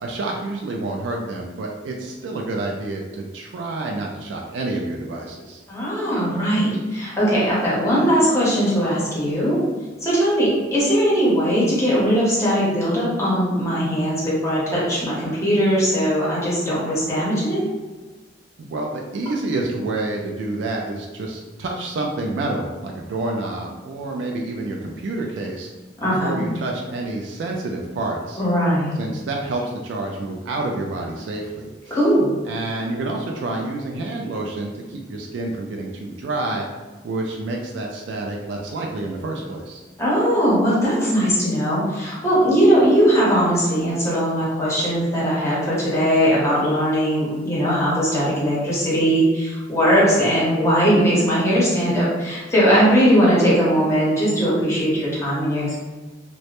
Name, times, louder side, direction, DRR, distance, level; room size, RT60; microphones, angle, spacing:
voice 1, 0.0-5.6 18.6-25.7 26.2-28.4 29.0-32.0 32.5-36.7 37.0-39.8, right 2 dB, 75° right, 0 dB, 0.3 m, -28 dB
voice 2, 5.7-9.6 10.0-17.6 26.0-26.4 28.4-29.0 31.9-32.3 40.0-55.8, equal, 15° left, -8 dB, 0.8 m, -19 dB
2.1 x 2.0 x 2.8 m, 1.3 s
head